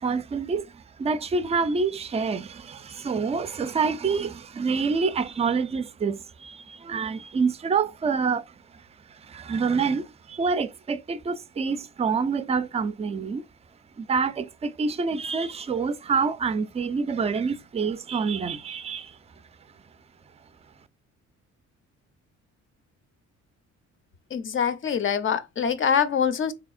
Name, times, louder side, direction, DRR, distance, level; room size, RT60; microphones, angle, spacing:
voice 1, 0.0-8.8 9.1-13.5 14.0-19.2, right 5 dB, 20° right, 0.4 m, -27 dB
voice 2, 24.3-26.5, left 7 dB, 40° left, 0.6 m, -24 dB
3.5 x 2.7 x 2.4 m
cardioid pair, 90°, 30 cm